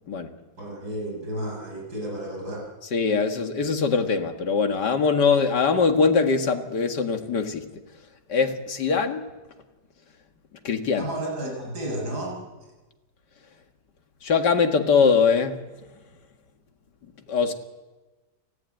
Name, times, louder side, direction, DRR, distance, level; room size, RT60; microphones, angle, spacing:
voice 1, 0.6-2.7 11.0-12.7, right 1 dB, 70° right, -1 dB, 6.9 m, -32 dB
voice 2, 2.9-7.6 8.3-9.3 10.6-11.1 14.2-15.6 17.3-17.5, left 5 dB, 75° left, 5 dB, 2.4 m, -22 dB
29.5 x 15.5 x 9.1 m, 1.2 s
omnidirectional pair, 1.8 m